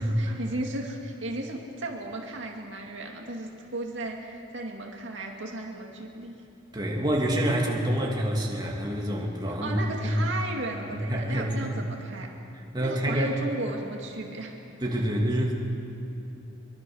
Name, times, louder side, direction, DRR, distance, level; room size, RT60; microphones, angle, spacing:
voice 1, 0.0-6.3 9.5-12.3 12.8-14.5, right 1 dB, 65° right, 1 dB, 2.3 m, -35 dB
voice 2, 6.7-10.3 10.9-11.7 12.7-13.4 14.8-15.5, equal, 20° right, -2 dB, 2.7 m, -27 dB
24.0 x 23.0 x 6.4 m, 2.9 s
head